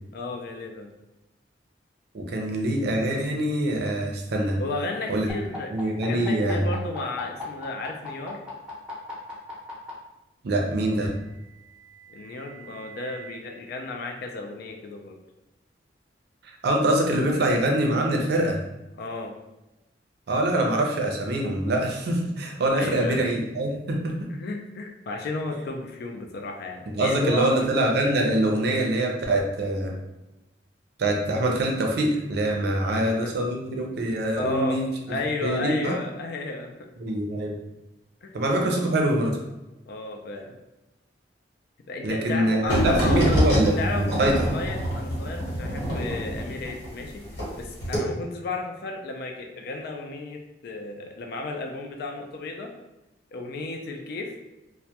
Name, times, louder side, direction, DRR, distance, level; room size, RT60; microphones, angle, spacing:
voice 1, 0.1-0.9 4.6-5.7 6.0-8.4 12.1-15.2 19.0-19.3 22.7-23.3 24.3-27.6 32.9-33.3 34.4-34.8 35.1-36.9 38.2-38.4 39.9-40.6 41.9-43.4 43.8-47.2 47.5-52.7 53.3-54.4, left 2 dB, 60° left, 4 dB, 0.3 m, -33 dB
voice 2, 2.1-4.6 5.1-5.3 5.7-6.7 10.4-11.1 16.6-18.6 20.3-24.3 27.0-29.9 31.0-34.9 35.4-36.0 37.0-37.6 38.3-39.4 42.0-44.4, right 1 dB, 65° right, 1 dB, 0.5 m, -24 dB
sound 1, 5.3-9.9 11.1-13.3, left 1 dB, 5° right, 0.6 m, -42 dB
sound 2, 42.7-47.5 47.8-48.0, equal, 75° left, 1.1 m, -26 dB
2.2 x 2.1 x 2.7 m, 0.98 s
head